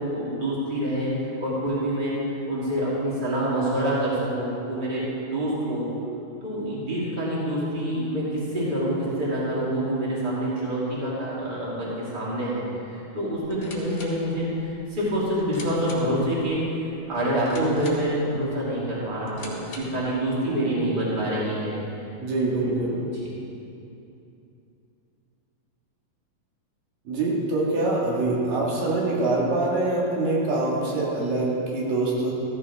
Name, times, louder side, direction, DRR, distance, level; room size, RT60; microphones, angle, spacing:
voice 1, 0.0-2.1 2.5-5.9 6.4-21.8 22.5-23.3, right 1 dB, 15° right, -8 dB, 2.8 m, -27 dB
sound 1, 13.4-20.1, left 2 dB, 40° left, 2.1 m, -45 dB
voice 2, 22.2-23.0 27.1-32.3, right 2 dB, 75° right, -5 dB, 3.7 m, -24 dB
14.5 x 14.5 x 3.6 m, 2.8 s
omnidirectional pair, 4.0 m